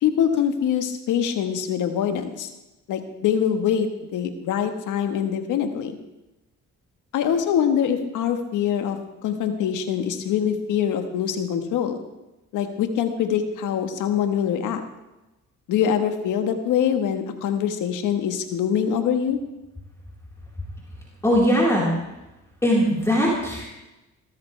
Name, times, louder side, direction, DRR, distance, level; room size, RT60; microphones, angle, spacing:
voice 1, 0.0-2.5 2.9-6.0 7.1-12.0 12.5-14.8 15.7-19.4, left 8 dB, 85° left, 7 dB, 1.5 m, -24 dB
voice 2, 21.2-21.9 22.6-23.6, equal, 10° left, -6 dB, 4.3 m, -20 dB
18.0 x 13.5 x 3.4 m, 1.0 s
cardioid pair, 90°, 30 cm